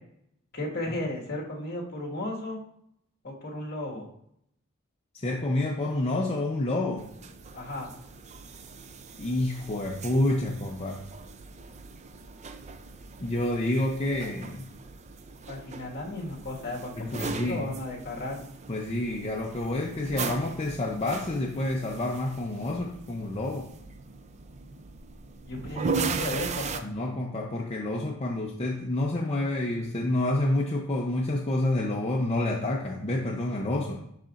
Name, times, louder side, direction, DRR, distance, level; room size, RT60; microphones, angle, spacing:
voice 1, 0.5-2.6 3.2-4.1 7.5-7.9 15.5-18.4 25.5-26.9, left 1 dB, 50° left, -2 dB, 1.7 m, -34 dB
voice 2, 5.1-7.1 9.2-11.0 13.2-14.7 17.0-17.7 18.7-23.7 26.8-34.0, left 1 dB, 30° left, 0 dB, 0.6 m, -28 dB
sound 1, 7.0-26.8, right 4 dB, 35° right, 0.4 m, -38 dB
11.5 x 4.0 x 2.5 m, 0.74 s
head